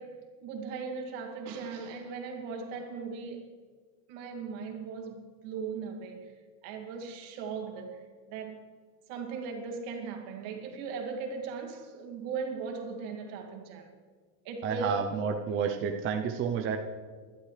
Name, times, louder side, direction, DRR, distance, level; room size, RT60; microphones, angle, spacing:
voice 1, 0.0-3.6 4.1-6.3 6.6-8.0 8.3-8.6 9.1-13.9 14.4-15.1, right 4 dB, 65° right, 2.4 m, -38 dB
voice 2, 14.6-16.8, right 7 dB, 25° right, 0.6 m, -30 dB
22.5 x 11.5 x 3.3 m
cardioid pair, 170°, 46 cm